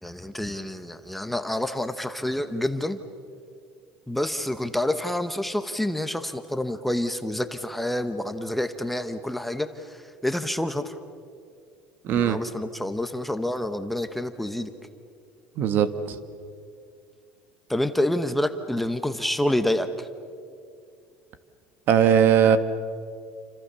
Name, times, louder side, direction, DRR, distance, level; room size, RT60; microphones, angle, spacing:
voice 1, 0.0-3.0 4.1-10.9 12.2-14.7 17.7-20.1, left 1 dB, 5° left, 8 dB, 1.0 m, -28 dB
voice 2, 12.0-12.4 15.6-16.2 21.9-22.6, right 8 dB, 45° right, 11 dB, 1.5 m, -19 dB
29.0 x 26.0 x 6.9 m, 2.3 s
cardioid pair, 150°, 5 cm